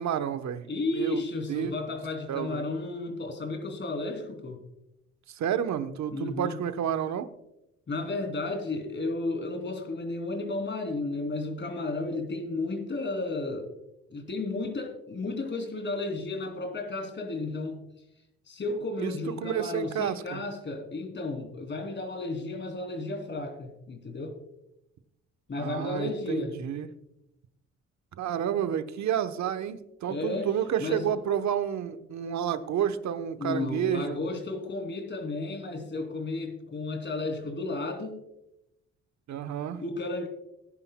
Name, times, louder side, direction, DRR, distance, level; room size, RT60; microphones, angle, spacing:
voice 1, 0.0-0.6 0.9-1.2 1.5-1.7 2.3-2.6 5.3-7.3 19.0-19.1 19.4-20.4 25.6-26.9 28.2-34.2 39.3-39.8, right 9 dB, 65° right, 10 dB, 1.0 m, -30 dB
voice 2, 0.7-4.7 6.1-6.6 7.9-13.7 14.1-17.8 18.5-24.3 25.5-26.6 30.1-30.5 30.8-31.1 33.4-38.2 39.8-40.3, left 2 dB, 40° left, 4 dB, 3.0 m, -33 dB
18.5 x 10.0 x 2.2 m, 0.87 s
cardioid pair, 90°, 30 cm